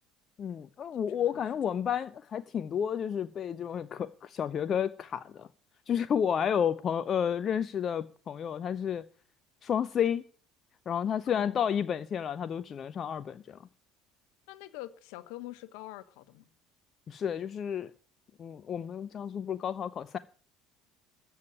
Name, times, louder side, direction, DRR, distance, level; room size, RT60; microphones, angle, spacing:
voice 1, 0.4-5.5 5.9-9.0 9.6-10.2 10.9-13.6 17.1-17.9 18.4-20.2, left 8 dB, 35° left, 0.6 m, -31 dB
voice 2, 1.1-1.4 11.3-11.7 14.5-16.5, left 16 dB, 60° left, 1.0 m, -45 dB
14.0 x 7.2 x 8.6 m
figure-of-eight pair, 60°, 0 cm